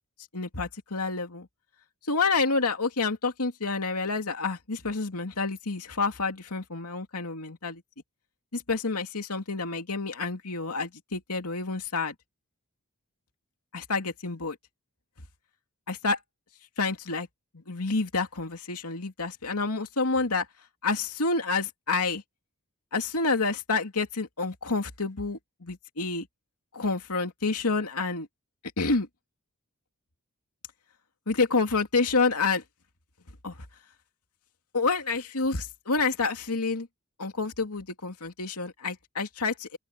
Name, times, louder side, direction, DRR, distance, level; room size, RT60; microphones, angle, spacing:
voice 1, 0.3-1.5 2.0-7.8 8.5-12.1 13.7-14.6 15.9-16.2 16.8-17.3 17.5-20.5 20.8-22.2 22.9-26.3 26.7-28.3 28.8-29.1 31.3-32.6 33.4-33.7 34.7-36.9 37.2-39.8, left 4 dB, 85° left, 2.5 m, -28 dB
open air
head